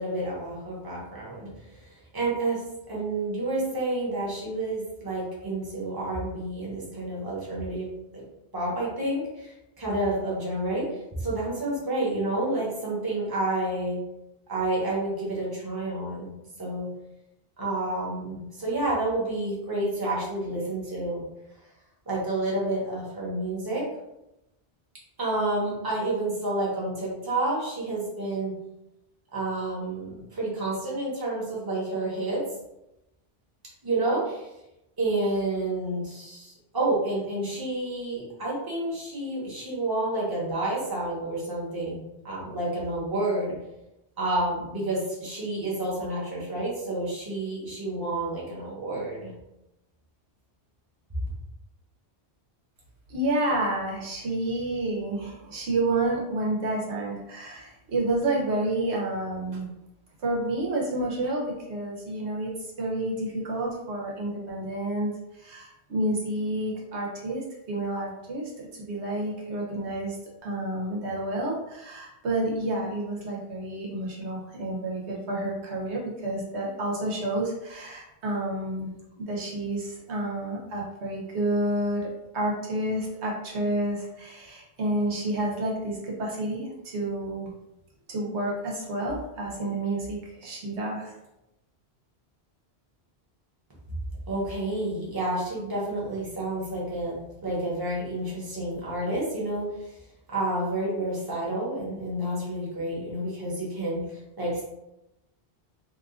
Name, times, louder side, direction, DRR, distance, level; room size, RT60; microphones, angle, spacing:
voice 1, 0.0-7.9 8.1-8.2 8.5-14.0 14.5-16.3 16.6-16.9 17.6-21.2 22.1-23.8 25.2-28.5 29.3-32.4 33.8-34.5 35.0-43.6 44.2-49.3 94.3-100.0 100.3-104.6, right 2 dB, 20° right, -5 dB, 0.9 m, -29 dB
voice 2, 53.1-59.7 60.2-62.5 62.8-70.2 70.4-82.1 82.3-87.5 88.1-91.1, right 1 dB, 90° right, -3 dB, 1.2 m, -30 dB
2.8 x 2.4 x 3.6 m, 0.91 s
omnidirectional pair, 1.1 m